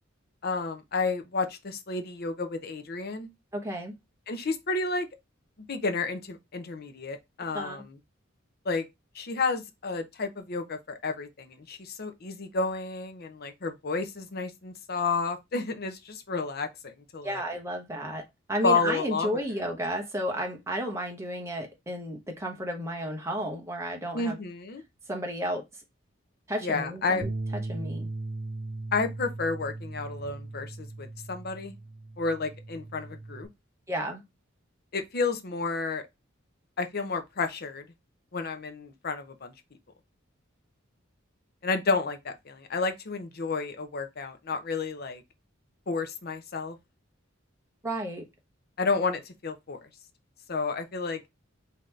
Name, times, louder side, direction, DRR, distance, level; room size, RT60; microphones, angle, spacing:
voice 1, 0.4-3.3 4.3-5.1 5.7-8.0 8.6-8.9 9.1-17.4 18.6-19.4 24.1-24.8 26.6-27.3 28.9-31.7 32.2-33.5 34.9-36.0 36.8-37.9 38.3-39.5 41.6-45.2 45.9-46.8 48.8-49.8 50.5-51.2, left 4 dB, 50° left, 0.7 m, -31 dB
voice 2, 3.5-4.0 7.5-7.8 17.2-18.2 18.5-24.4 25.1-25.6 26.5-27.3 27.7-28.1 33.9-34.2 47.8-48.2, right 1 dB, 15° right, 0.9 m, -32 dB
Bass guitar, 27.2-33.5, right 2 dB, 35° right, 0.4 m, -38 dB
3.8 x 2.9 x 3.2 m
head